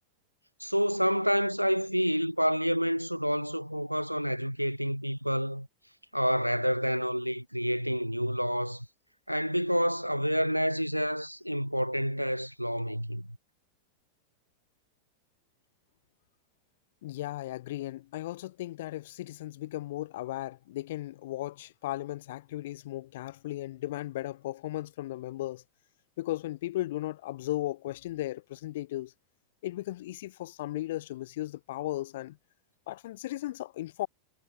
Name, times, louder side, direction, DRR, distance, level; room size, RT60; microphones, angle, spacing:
voice 1, 0.6-5.7 6.1-8.9 9.3-13.3, equal, 90° right, 3.5 m, -28 dB
voice 2, 17.0-25.6 26.2-29.1 29.6-32.4 32.9-34.1, left 15 dB, 55° left, 5.3 m, -36 dB
figure-of-eight pair, 90°, 0 cm